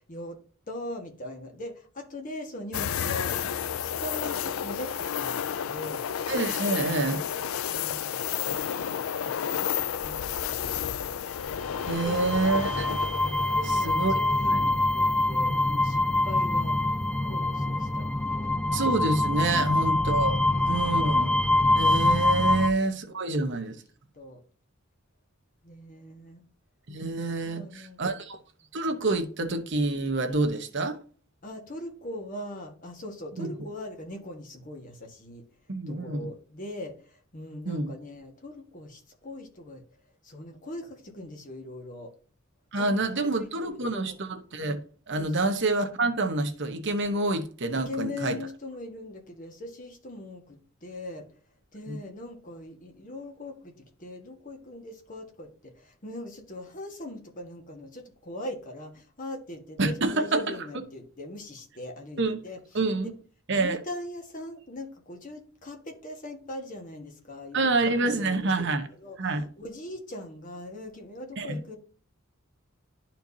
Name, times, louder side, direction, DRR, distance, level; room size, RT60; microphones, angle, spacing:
voice 1, 0.7-3.4 3.8-6.0 7.7-11.2 12.0-12.4 13.5-16.8 17.2-18.6 19.5-20.0 20.3-21.0 23.1-23.8 24.1-24.4 25.6-26.4 27.4-28.0 30.3-30.4 31.4-35.4 35.9-39.8 40.2-42.1 42.8-44.2 45.2-45.3 47.7-51.3 51.7-53.7 54.0-62.6 63.5-68.7 69.0-69.2 69.6-71.8, left 1 dB, 40° left, 1.6 m, -41 dB
sound 1, 2.7-15.8 16.1-16.2 18.7-19.1, left 9 dB, 80° left, 0.4 m, -32 dB
voice 2, 6.3-7.2 11.9-13.0 13.7-14.1 14.4-14.7 16.7-16.8 18.7-20.4 20.7-21.4 21.7-23.7 26.9-28.4 28.7-31.0 33.4-33.5 35.7-36.3 37.7-37.9 42.7-48.4 51.9-52.0 59.8-60.6 62.2-62.4 62.7-63.1 63.5-63.8 67.5-68.8 69.2-69.5 71.4-71.6, right 2 dB, 60° right, 1.0 m, -27 dB
sound 2, 11.6-22.7, left 2 dB, 5° left, 0.4 m, -25 dB
11.5 x 4.5 x 2.8 m
head